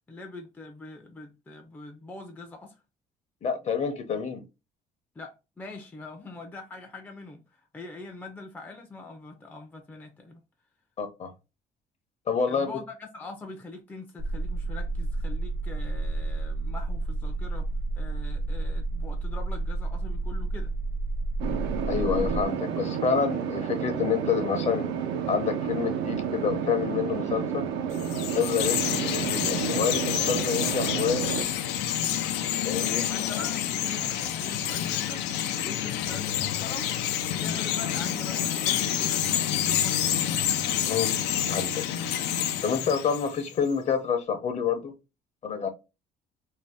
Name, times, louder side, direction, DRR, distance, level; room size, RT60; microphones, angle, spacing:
voice 1, 0.1-2.8 5.2-10.4 12.5-17.7 18.0-20.7 33.1-35.2 35.5-36.9 37.3-40.3, left 3 dB, 10° left, 0.4 m, -43 dB
voice 2, 3.4-4.4 11.0-11.3 12.3-12.7 21.9-24.8 25.3-27.7 28.3-31.5 32.6-33.1 40.9-41.2 41.5-41.8 42.6-44.9 45.4-45.7, left 6 dB, 40° left, 0.7 m, -28 dB
sound 1, 14.2-22.4, right 2 dB, 55° right, 0.8 m, -30 dB
sound 2, 21.4-31.4, right 7 dB, 85° right, 0.5 m, -30 dB
Chirp tweet, 27.9-43.5, left 10 dB, 85° left, 0.4 m, -28 dB
2.7 x 2.1 x 3.2 m
cardioid pair, 110°, 17 cm